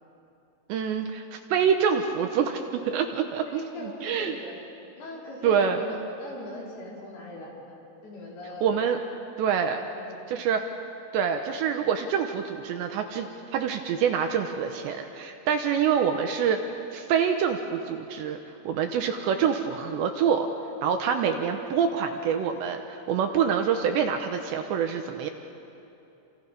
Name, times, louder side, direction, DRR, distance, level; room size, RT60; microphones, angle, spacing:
voice 1, 0.7-4.4 5.4-5.8 8.6-9.0 9.4-9.8 10.3-10.6 11.1-18.4 18.6-20.5 20.8-25.3, right 7 dB, 75° right, 5 dB, 2.8 m, -26 dB
voice 2, 3.5-4.6 5.0-8.7 9.8-10.3, left 1 dB, 50° left, -4 dB, 6.5 m, -41 dB
28.5 x 28.0 x 5.5 m, 2.8 s
omnidirectional pair, 5.9 m